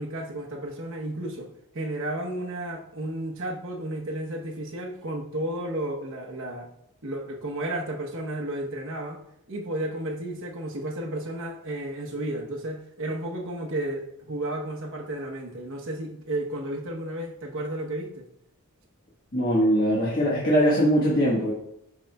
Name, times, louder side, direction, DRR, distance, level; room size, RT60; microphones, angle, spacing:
voice 1, 0.0-6.7 7.0-9.2 9.5-18.2, right 1 dB, 60° right, 1 dB, 1.0 m, -33 dB
voice 2, 19.3-21.5, equal, 40° left, -6 dB, 1.4 m, -21 dB
12.0 x 4.8 x 2.3 m, 0.79 s
head